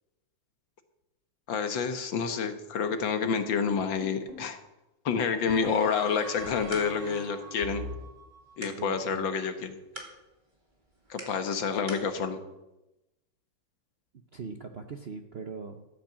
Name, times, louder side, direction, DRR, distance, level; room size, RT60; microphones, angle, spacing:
voice 1, 1.5-4.6 5.1-7.9 8.6-9.8 11.1-12.4, left 6 dB, 65° left, 8 dB, 1.8 m, -28 dB
sound 1, 3.7-4.5 5.5-8.8, right 1 dB, 45° right, 2.7 m, -42 dB
sound 2, 6.3-12.1, right 1 dB, 20° right, 2.2 m, -48 dB
voice 2, 8.6-9.3 14.3-15.9, right 5 dB, 70° right, 5 dB, 0.5 m, -41 dB
13.5 x 8.7 x 7.4 m, 0.97 s
omnidirectional pair, 2.3 m